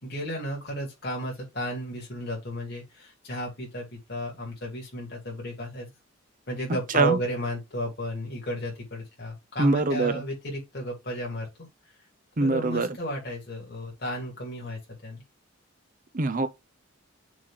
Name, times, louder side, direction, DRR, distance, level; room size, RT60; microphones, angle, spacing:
voice 1, 0.0-5.9 6.5-11.5 12.4-15.2, equal, 50° left, 2.7 m, -33 dB
voice 2, 9.6-10.2 12.4-13.0 16.1-16.5, right 3 dB, 40° right, 0.6 m, -23 dB
6.2 x 3.0 x 5.8 m
head